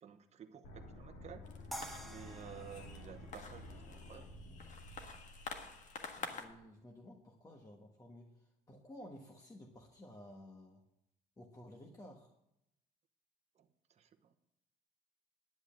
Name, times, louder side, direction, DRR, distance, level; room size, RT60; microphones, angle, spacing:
voice 1, 0.0-1.5 2.0-4.3 13.5-14.3, right 8 dB, 40° right, 6 dB, 1.0 m, -53 dB
sound 1, 0.6-6.6, left 1 dB, 80° left, 2.3 m, -52 dB
sound 2, 1.5-6.5, left 4 dB, 45° left, 1.6 m, -49 dB
sound 3, 1.7-4.8, right 1 dB, ahead, 1.2 m, -50 dB
voice 2, 6.2-10.8 11.4-12.3, left 1 dB, 20° left, 1 dB, 1.4 m, -54 dB
10.5 x 8.0 x 7.6 m, 0.83 s
cardioid pair, 110°, 17 cm